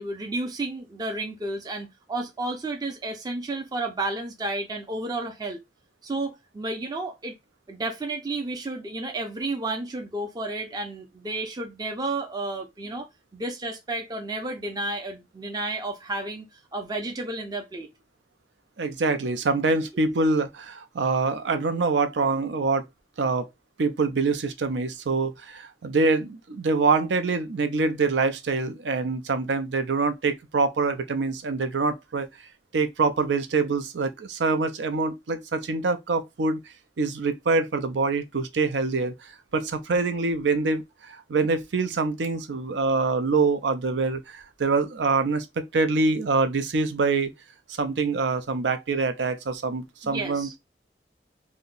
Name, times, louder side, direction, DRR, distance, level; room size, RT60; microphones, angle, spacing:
voice 1, 0.0-5.6 6.0-7.3 7.7-13.1 13.3-17.9 50.0-50.5, right 2 dB, 20° right, 0.5 m, -32 dB
voice 2, 18.8-22.8 23.2-23.5 23.8-32.3 32.7-36.6 37.0-39.1 39.5-47.3 47.8-50.6, right 3 dB, 85° right, 0.5 m, -25 dB
2.8 x 2.1 x 3.8 m
head